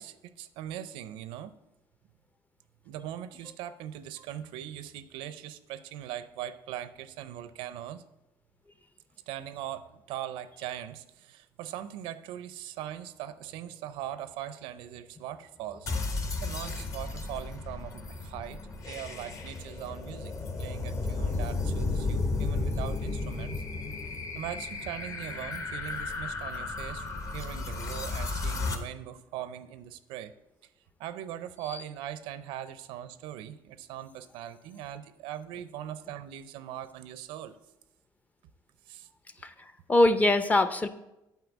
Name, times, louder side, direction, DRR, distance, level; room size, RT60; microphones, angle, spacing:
voice 1, 0.0-1.5 2.8-8.0 9.3-15.9 16.1-23.6 24.3-30.3 31.0-37.6 38.9-39.1, right 11 dB, 85° right, 13 dB, 0.5 m, -40 dB
sound 1, 15.9-28.8, left 3 dB, 40° left, 1.1 m, -33 dB
voice 2, 39.4-40.9, left 2 dB, 15° left, 12 dB, 0.5 m, -24 dB
8.1 x 4.5 x 7.1 m, 0.92 s
cardioid pair, 115°, 9 cm